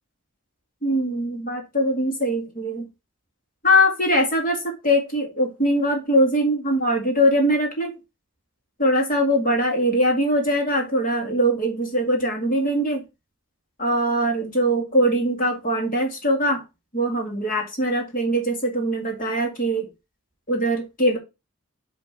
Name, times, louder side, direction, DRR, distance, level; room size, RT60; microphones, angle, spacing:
voice 1, 0.8-2.9 3.6-7.9 8.8-13.0 13.8-16.6 16.9-19.9 20.5-21.2, equal, 40° left, 2.1 m, -22 dB
6.9 x 3.4 x 5.9 m
head